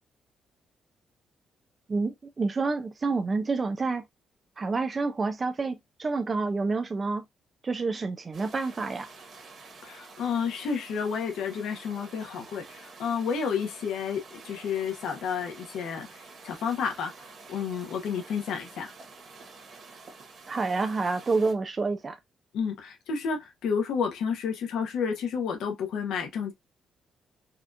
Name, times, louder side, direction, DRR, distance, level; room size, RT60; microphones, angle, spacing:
voice 1, 1.9-4.0 4.6-7.2 7.6-9.1 20.5-22.2, right 3 dB, 25° right, 0.3 m, -28 dB
sound 1, 8.3-21.5, right 4 dB, 40° right, 1.2 m, -49 dB
voice 2, 9.8-18.9 22.5-26.5, left 6 dB, 80° left, 0.9 m, -31 dB
4.2 x 2.4 x 2.6 m
cardioid pair, 165°, 0 cm